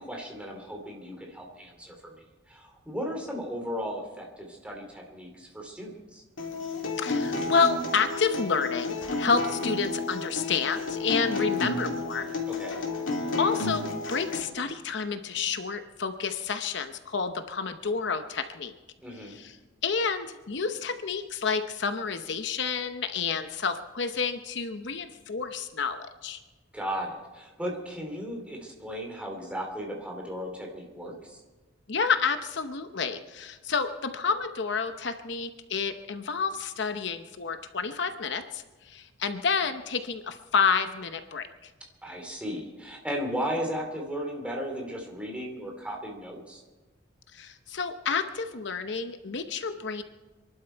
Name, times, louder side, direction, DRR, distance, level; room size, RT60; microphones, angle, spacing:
voice 1, 0.0-2.2 2.5-6.2 12.5-12.8 19.0-19.4 26.7-31.4 42.0-46.6, equal, 5° right, 1 dB, 2.9 m, -35 dB
Acoustic guitar, 6.4-14.4, left 3 dB, 85° left, 2.7 m, -31 dB
voice 2, 7.0-12.3 13.4-18.7 19.2-19.6 19.8-26.4 31.9-41.7 47.3-50.0, left 5 dB, 60° left, 8 dB, 0.8 m, -29 dB
26.0 x 12.0 x 4.5 m, 1.2 s
head